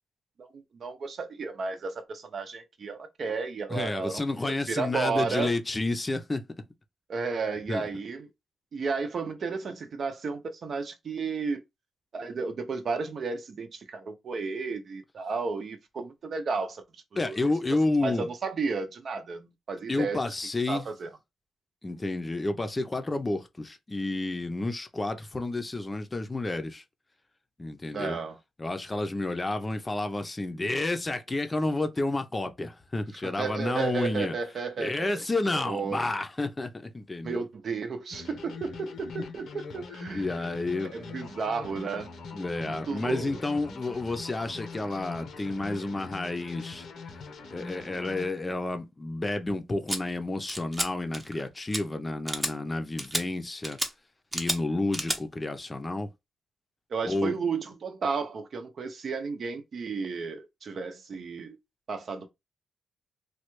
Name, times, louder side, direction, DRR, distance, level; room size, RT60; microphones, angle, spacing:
voice 1, 0.4-4.2 4.7-5.5 7.1-8.3 8.7-11.6 12.1-16.8 17.1-17.4 18.0-20.2 20.7-21.1 27.9-28.4 33.2-36.0 37.2-40.5 40.9-42.1 42.7-43.4 56.9-61.6 61.9-62.3, right 4 dB, 60° right, 0.6 m, -33 dB
voice 2, 3.7-6.4 7.7-7.9 17.2-18.3 19.9-20.9 21.8-26.8 27.6-28.2 28.6-34.3 34.8-37.4 40.1-40.9 42.3-46.9 47.5-53.8 54.3-56.1 57.0-57.4, left 2 dB, 25° left, 0.6 m, -30 dB
sound 1, 38.1-48.3, left 4 dB, 80° left, 0.8 m, -42 dB
sound 2, 49.9-50.0 50.5-50.9 51.1-51.4 51.7-51.8 52.3-52.5 53.0-53.2 53.6-53.9 54.3-54.6 54.9-55.2, right 1 dB, 15° right, 0.7 m, -30 dB
3.2 x 2.3 x 3.0 m
cardioid pair, 90°, 0 cm